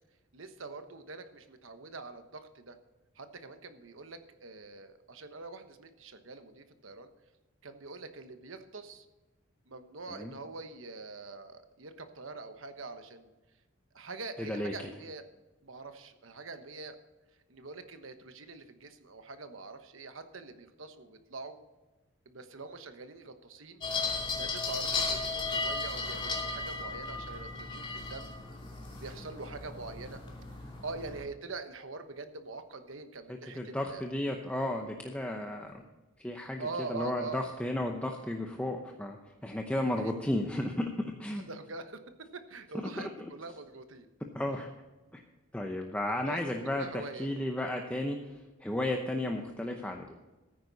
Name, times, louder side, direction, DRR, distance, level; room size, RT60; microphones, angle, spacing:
voice 1, 0.3-2.8 3.1-7.1 7.6-9.1 9.7-13.3 13.9-15.2 15.6-17.0 17.5-21.6 22.2-23.8 24.4-28.3 29.0-30.2 30.8-34.0 36.6-37.4 39.9-40.1 41.5-42.0 42.3-44.1 46.2-46.4 46.7-47.3, right 3 dB, 75° right, 8 dB, 1.2 m, -44 dB
voice 2, 14.4-14.7 33.3-35.9 36.2-41.5 43.0-43.3 44.3-44.7 45.1-45.2 45.5-46.8 47.2-50.1, left 1 dB, 5° left, 2 dB, 0.8 m, -34 dB
sound 1, 23.8-31.2, left 3 dB, 25° left, 2.6 m, -35 dB
14.0 x 9.7 x 4.1 m, 1.1 s
head